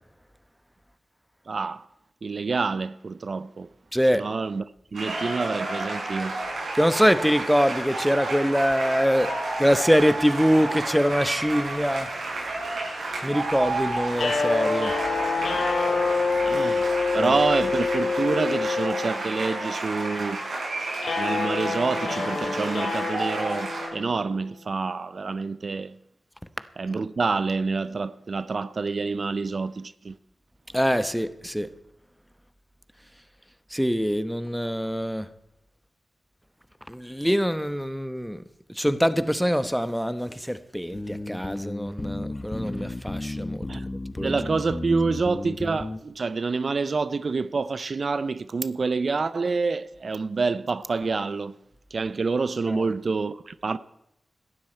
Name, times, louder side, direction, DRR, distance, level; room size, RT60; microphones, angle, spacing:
voice 1, 1.5-1.9 2.2-3.7 4.1-4.6 4.9-6.4 16.5-20.5 20.8-20.9 21.2-26.0 26.8-30.2 43.7-43.9 44.2-51.5 51.9-53.8, right 4 dB, 60° right, 0.5 m, -27 dB
voice 2, 3.9-4.2 6.7-9.3 9.6-12.1 13.2-14.9 17.1-17.3 30.7-31.7 33.7-35.3 36.9-38.4 38.8-44.3 52.7-52.8, equal, ahead, 0.9 m, -24 dB
sound 1, 4.9-23.9, right 2 dB, 85° right, 7.4 m, -31 dB
sound 2, 14.1-24.4, left 4 dB, 85° left, 2.5 m, -27 dB
sound 3, 40.9-46.0, left 2 dB, 25° left, 1.0 m, -33 dB
17.5 x 12.5 x 4.4 m
wide cardioid pair, 70°, 0 cm